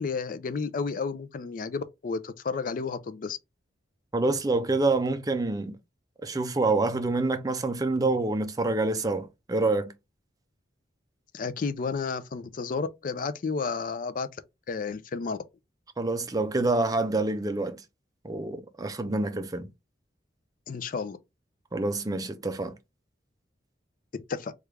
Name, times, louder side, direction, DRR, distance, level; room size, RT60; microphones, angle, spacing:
voice 1, 0.0-3.4 11.3-14.3 14.7-15.4 20.7-21.2 24.3-24.5, left 4 dB, 45° left, 0.4 m, -32 dB
voice 2, 4.1-5.8 6.2-9.9 16.0-17.8 18.2-19.7 21.7-22.8, right 2 dB, 20° right, 0.4 m, -27 dB
3.2 x 2.4 x 3.2 m
head